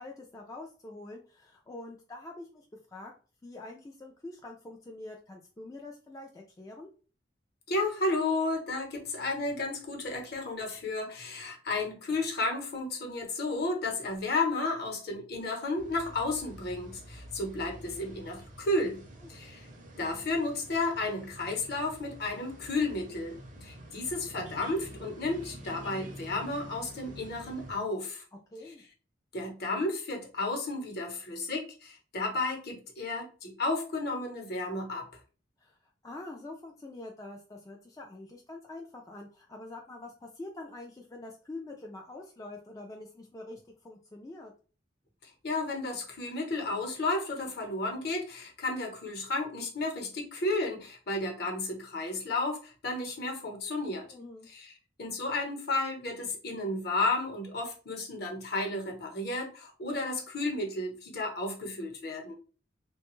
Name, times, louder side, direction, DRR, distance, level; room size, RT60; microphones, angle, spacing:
voice 1, 0.0-3.1 3.4-6.9 19.2-19.4 28.5-28.8 35.6-35.8 36.0-44.5 54.1-54.5, left 2 dB, 20° left, 0 dB, 0.3 m, -45 dB
voice 2, 7.7-19.0 19.3-19.6 20.0-28.2 29.3-35.1 45.4-54.1 54.5-54.7 55.0-62.3, left 2 dB, 55° left, 2 dB, 0.9 m, -32 dB
sound 1, 15.8-27.8, equal, 45° right, 0.6 m, -48 dB
3.3 x 2.2 x 2.9 m, 0.36 s
head